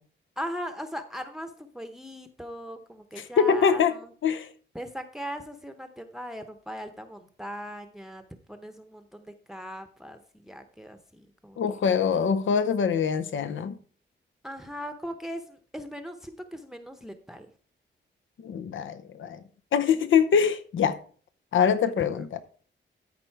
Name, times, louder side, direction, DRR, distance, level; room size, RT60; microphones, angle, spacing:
voice 1, 0.4-4.1 4.7-11.6 14.4-17.5, equal, ahead, 0.8 m, -39 dB
voice 2, 3.2-4.0 4.2-4.5 11.6-13.8 18.4-19.4 19.7-21.0 21.5-22.4, left 7 dB, 80° left, 0.8 m, -24 dB
13.5 x 5.2 x 4.7 m
wide cardioid pair, 110°, 20 cm